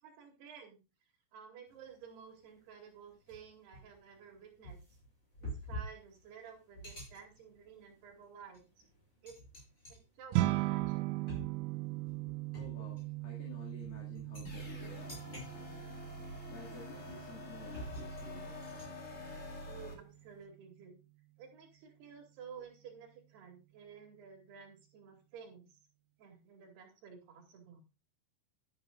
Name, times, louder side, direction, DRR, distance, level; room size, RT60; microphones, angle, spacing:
voice 1, 0.0-0.8 1.3-4.8 5.4-8.6 9.2-9.4 9.9-11.1 19.6-21.0 21.4-25.8 26.2-27.8, right 7 dB, 65° right, 2 dB, 4.5 m, -53 dB
sound 1, 1.7-2.0 2.4-2.5 3.3-20.4, equal, 15° left, 6.3 m, -50 dB
sound 2, 10.3-19.8, right 18 dB, 90° right, 3.0 m, -39 dB
voice 2, 12.2-16.0 16.5-18.7, left 4 dB, 55° left, -2 dB, 3.7 m, -53 dB
sound 3, 14.4-19.9, left 1 dB, 40° left, 1.0 m, -46 dB
12.0 x 10.5 x 2.4 m, 0.28 s
omnidirectional pair, 5.1 m